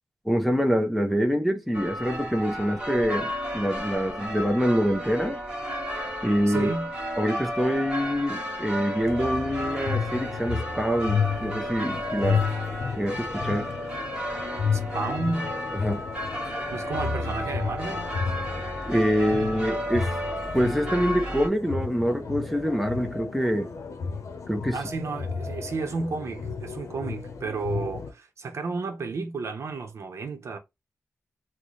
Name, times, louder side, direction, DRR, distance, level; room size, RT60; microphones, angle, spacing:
voice 1, 0.3-5.4 6.2-6.7 7.2-12.4 13.0-13.7 15.8-16.0 18.9-20.1 20.5-23.7 24.5-24.8, equal, ahead, 0.6 m, -25 dB
sound 1, 1.7-21.5, equal, 20° right, 1.2 m, -33 dB
voice 2, 6.5-6.9 14.7-15.5 16.7-18.1 24.7-30.6, right 4 dB, 65° right, 0.7 m, -32 dB
sound 2, 9.0-28.1, left 5 dB, 75° left, 0.7 m, -32 dB
4.0 x 2.1 x 3.0 m
wide cardioid pair, 170°, 5 cm